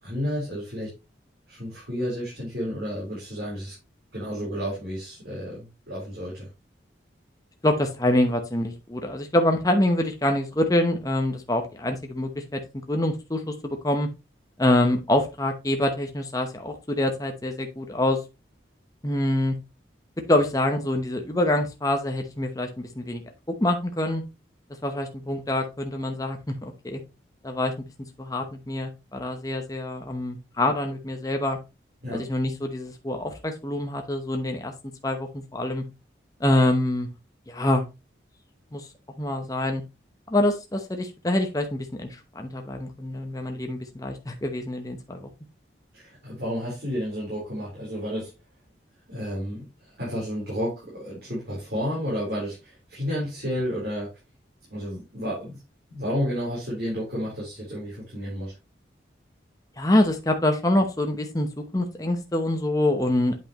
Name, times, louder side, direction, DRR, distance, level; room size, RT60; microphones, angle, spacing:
voice 1, 0.0-0.9 1.5-3.7 4.1-6.5 32.0-32.2 45.9-48.3 49.1-54.1 54.7-55.6 55.9-58.5, equal, 55° right, -6 dB, 3.8 m, -31 dB
voice 2, 7.6-12.6 12.9-14.1 14.6-18.2 19.0-19.6 20.3-23.2 23.5-24.2 24.8-27.0 27.4-27.7 28.2-31.6 32.1-34.7 35.0-35.8 36.4-37.1 37.5-37.8 38.7-38.9 39.2-39.8 40.3-45.3 59.8-63.4, left 1 dB, 20° left, 4 dB, 0.8 m, -25 dB
8.7 x 5.4 x 3.0 m, 0.26 s
head